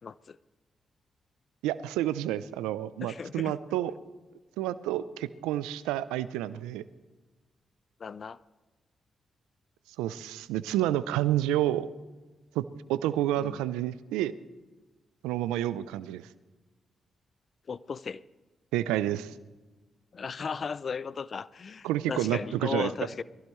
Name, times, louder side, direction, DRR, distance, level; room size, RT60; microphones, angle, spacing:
voice 1, 0.0-0.4 3.0-3.6 8.0-8.4 13.4-13.6 17.7-18.2 20.1-23.2, left 5 dB, 55° left, 0.5 m, -36 dB
voice 2, 1.6-3.9 4.6-6.8 10.0-11.9 12.6-14.3 15.2-16.3 18.7-19.3 21.8-22.9, right 13 dB, 85° right, 0.5 m, -29 dB
22.5 x 16.0 x 3.2 m
hypercardioid pair, 40°, 0 cm